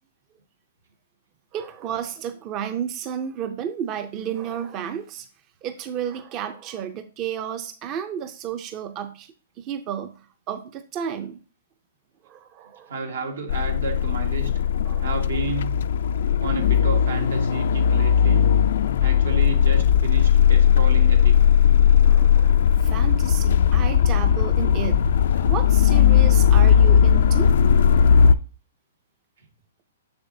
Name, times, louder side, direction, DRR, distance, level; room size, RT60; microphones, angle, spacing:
voice 1, 1.5-5.3 5.6-11.4 12.2-12.9 14.8-15.2 22.0-27.5, right 8 dB, 30° right, 9 dB, 0.5 m, -32 dB
voice 2, 12.9-14.5 15.0-15.8 16.4-18.5 19.0-21.4, right 3 dB, 85° right, 3 dB, 1.6 m, -31 dB
sound 1, 13.5-28.3, left 8 dB, 65° left, 0.3 m, -17 dB
6.8 x 6.7 x 2.7 m, 0.37 s
hypercardioid pair, 140°, 0 cm